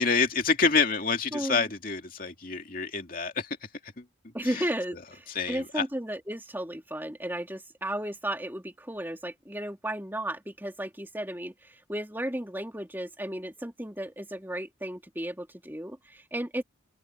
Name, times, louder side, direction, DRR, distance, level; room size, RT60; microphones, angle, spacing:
voice 1, 0.0-3.6 3.8-4.0 4.4-4.7 5.3-5.8, left 4 dB, 45° left, 2.5 m, -27 dB
voice 2, 1.3-1.6 4.3-16.6, right 1 dB, 10° right, 2.6 m, -34 dB
open air
head